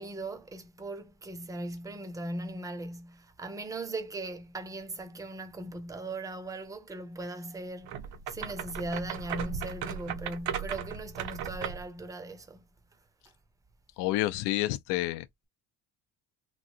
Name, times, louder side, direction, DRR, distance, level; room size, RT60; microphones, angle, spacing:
voice 1, 0.0-8.0 8.3-12.6, right 2 dB, 10° right, 0.5 m, -39 dB
sound 1, 7.8-11.9, right 8 dB, 65° right, 0.7 m, -37 dB
voice 2, 14.0-15.3, left 16 dB, 80° left, 0.5 m, -29 dB
3.1 x 2.6 x 2.7 m
cardioid pair, 140°, 41 cm